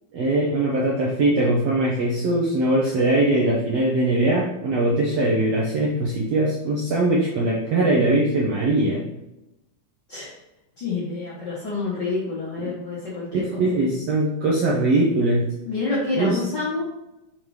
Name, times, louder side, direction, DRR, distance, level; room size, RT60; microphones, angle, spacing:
voice 1, 0.1-9.1 12.6-12.7 13.3-15.5 16.1-16.4, right 2 dB, 70° right, -4 dB, 1.6 m, -21 dB
voice 2, 10.8-13.6 15.6-16.8, left 3 dB, 60° left, -6 dB, 1.1 m, -28 dB
5.7 x 5.3 x 3.2 m, 0.94 s
omnidirectional pair, 3.7 m